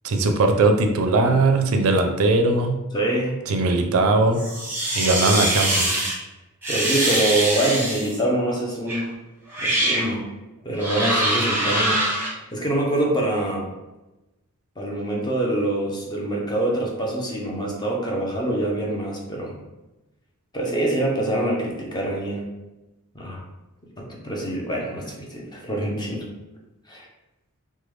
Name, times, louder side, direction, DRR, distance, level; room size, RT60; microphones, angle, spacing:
voice 1, 0.0-2.8 3.5-4.4 4.9-6.0, right 2 dB, 70° right, 5 dB, 0.4 m, -19 dB
voice 2, 2.9-3.4 3.7-4.1 6.7-9.2 9.6-10.3 10.6-12.0 12.3-13.7 14.8-19.5 20.5-22.5 23.1-23.4 24.0-26.3 26.9-27.1, right 1 dB, 20° left, -1 dB, 0.6 m, -25 dB
sound 1, 4.4-6.1 6.6-8.2 8.9-9.0 9.5-10.1 10.8-12.3, right 1 dB, 10° right, 0.8 m, -23 dB
3.2 x 2.2 x 3.1 m, 1.0 s
head